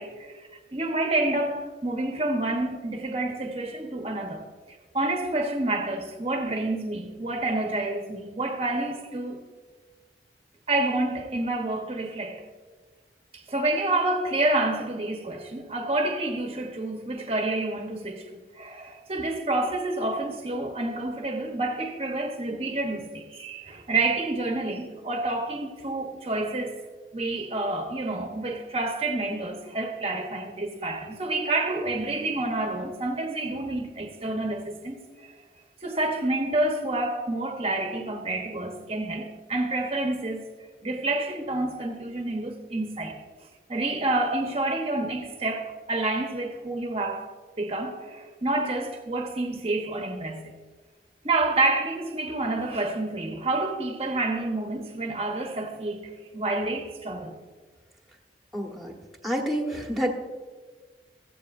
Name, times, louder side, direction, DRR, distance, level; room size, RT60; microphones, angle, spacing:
voice 1, 0.0-9.4 10.7-12.4 13.3-26.7 27.1-35.3 35.8-40.5 40.8-43.2 43.7-47.3 47.6-50.6 51.2-57.3, right 2 dB, 35° right, 1.0 m, -28 dB
voice 2, 58.5-58.9 59.2-60.1, equal, ahead, 1.2 m, -28 dB
15.5 x 15.0 x 2.6 m
head